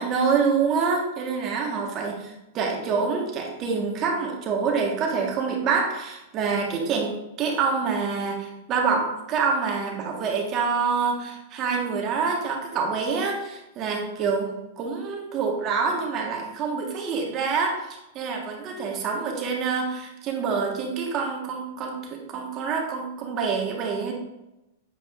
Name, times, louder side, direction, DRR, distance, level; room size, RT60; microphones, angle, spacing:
voice 1, 0.0-24.1, right 5 dB, 35° right, 1 dB, 1.5 m, -26 dB
7.8 x 4.9 x 2.6 m, 0.94 s
hypercardioid pair, 125°, 0 cm